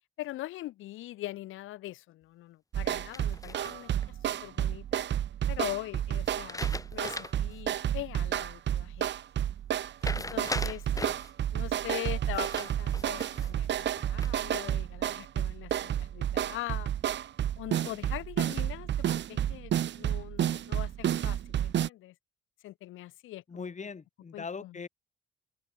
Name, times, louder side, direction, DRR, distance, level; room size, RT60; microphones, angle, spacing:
voice 1, 0.2-5.0 5.5-6.6 6.9-9.1 10.1-11.1 11.5-16.9 17.6-22.1 22.6-23.9 24.3-24.8, left 15 dB, 90° left, 2.6 m, -42 dB
sound 1, 2.7-21.9, right 11 dB, 65° right, 1.5 m, -31 dB
sound 2, 3.1-4.1 6.3-7.5 7.9-8.0 10.0-11.3 12.3-13.5 14.0-14.6, left 2 dB, 15° left, 3.3 m, -39 dB
voice 2, 23.5-24.9, left 5 dB, 35° left, 7.9 m, -40 dB
open air
cardioid pair, 90°, 20 cm